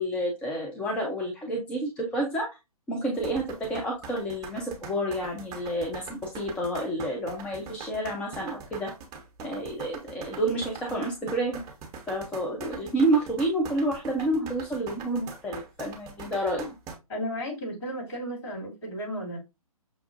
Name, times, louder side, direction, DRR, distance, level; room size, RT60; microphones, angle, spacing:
voice 1, 0.0-2.5 2.9-8.9 9.4-11.6 12.1-16.7, right 1 dB, 5° left, 0.4 m, -29 dB
sound 1, 3.1-17.0, right 5 dB, 20° right, 0.8 m, -42 dB
voice 2, 17.1-19.4, equal, 45° left, 2.5 m, -34 dB
5.9 x 2.3 x 2.5 m
figure-of-eight pair, 135°, 19 cm